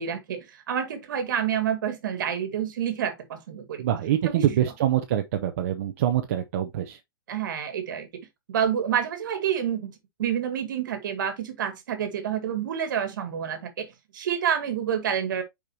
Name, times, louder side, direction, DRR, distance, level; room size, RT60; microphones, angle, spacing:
voice 1, 0.0-3.9 4.3-4.4 7.3-8.1 8.5-9.9 10.2-13.9 14.1-15.4, right 8 dB, 60° right, 2.1 m, -28 dB
voice 2, 3.8-7.0, right 11 dB, 40° right, 0.8 m, -25 dB
6.5 x 5.0 x 2.9 m
hypercardioid pair, 170°, 12 cm